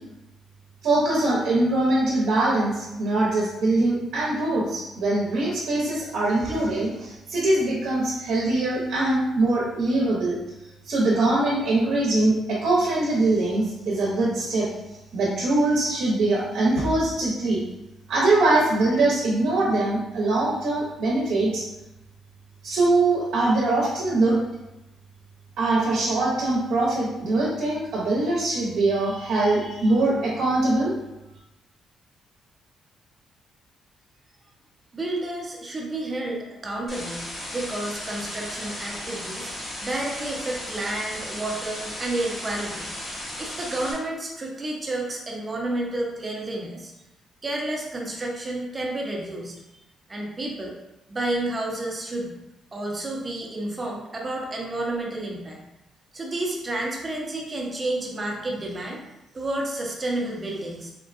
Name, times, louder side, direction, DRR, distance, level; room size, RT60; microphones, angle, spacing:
voice 1, 0.8-10.4 10.8-14.7 15.1-17.6 18.1-21.6 22.6-24.5 25.6-30.9, right 2 dB, 75° right, -5 dB, 0.8 m, -22 dB
voice 2, 34.9-37.2 37.5-39.5 39.8-42.9 43.4-46.9 47.4-49.6 50.1-50.7 51.1-52.4 52.7-55.6 56.1-59.0 59.3-60.9, right 1 dB, 30° right, -1 dB, 0.7 m, -30 dB
sound 1, 36.9-43.9, left 1 dB, 45° left, 1.0 m, -35 dB
3.6 x 2.2 x 2.5 m, 0.94 s
cardioid pair, 90°, 0 cm